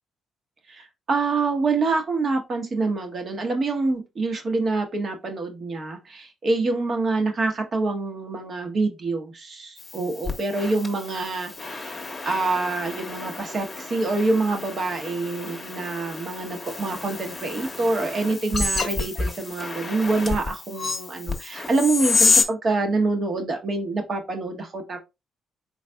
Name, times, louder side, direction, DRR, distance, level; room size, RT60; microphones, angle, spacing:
voice 1, 0.7-25.0, right 3 dB, 45° right, 1.1 m, -26 dB
sound 1, 9.8-22.4, left 4 dB, 25° left, 1.0 m, -29 dB
4.1 x 4.0 x 2.3 m
cardioid pair, 90°, 0 cm